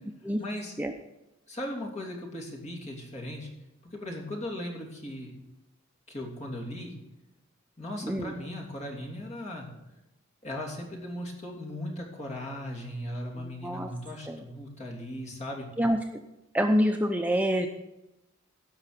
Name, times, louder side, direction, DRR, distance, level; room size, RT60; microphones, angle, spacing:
voice 1, 0.4-0.7 1.5-3.5 3.9-5.3 6.1-6.9 7.8-9.7 10.4-15.7, left 1 dB, 35° left, -1 dB, 3.0 m, -37 dB
voice 2, 13.4-13.9 14.3-14.4 15.8-16.0 16.5-17.7, equal, 10° right, 4 dB, 0.6 m, -26 dB
17.0 x 5.9 x 6.7 m, 0.95 s
head